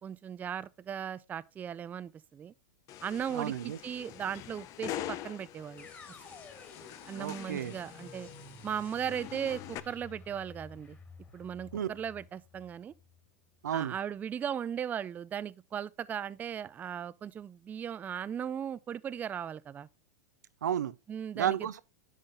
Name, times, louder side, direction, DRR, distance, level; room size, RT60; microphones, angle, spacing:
voice 1, 0.0-2.5 3.0-5.9 7.1-8.3 8.6-11.0 11.3-12.9 13.7-19.9 21.1-21.6, right 8 dB, 20° right, 0.3 m, -37 dB
sound 1, 2.9-9.8, left 12 dB, 40° left, 0.6 m, -44 dB
voice 2, 3.3-3.8 7.2-7.7 11.7-11.9 13.6-13.9 20.6-20.9 21.3-21.8, right 10 dB, 85° right, 0.6 m, -32 dB
sound 2, 5.8-13.7, left 4 dB, 20° left, 2.1 m, -52 dB
10.5 x 3.9 x 3.8 m
hypercardioid pair, 115°, 9 cm